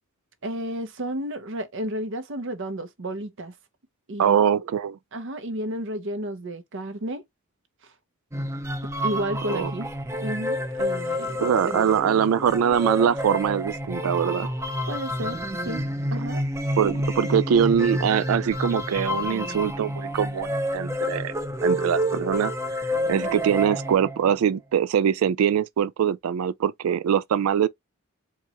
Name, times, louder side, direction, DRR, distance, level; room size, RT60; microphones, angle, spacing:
voice 1, 0.4-3.5 4.1-4.4 5.1-7.2 9.0-9.9 10.2-11.4 14.9-15.4 15.6-15.8 16.1-16.4, right 1 dB, 60° right, 0.8 m, -31 dB
voice 2, 4.2-5.0 9.5-9.7 11.4-14.5 16.8-21.3 21.6-27.7, right 8 dB, 90° right, 0.3 m, -23 dB
sound 1, 8.3-24.4, equal, 15° right, 0.5 m, -29 dB
4.6 x 2.3 x 2.9 m
head